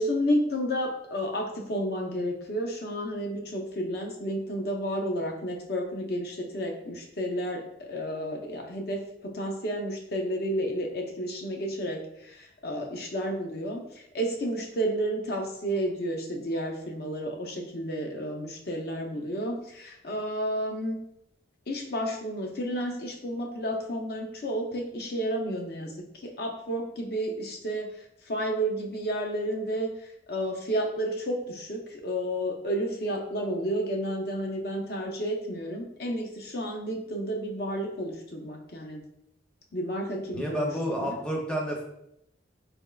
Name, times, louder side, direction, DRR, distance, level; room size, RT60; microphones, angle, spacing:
voice 1, 0.0-21.0 21.7-27.9 28.3-39.0 39.7-41.1, equal, 55° left, 1 dB, 0.6 m, -31 dB
voice 2, 40.3-41.8, equal, 5° left, -1 dB, 0.5 m, -30 dB
3.9 x 3.4 x 2.3 m, 0.77 s
head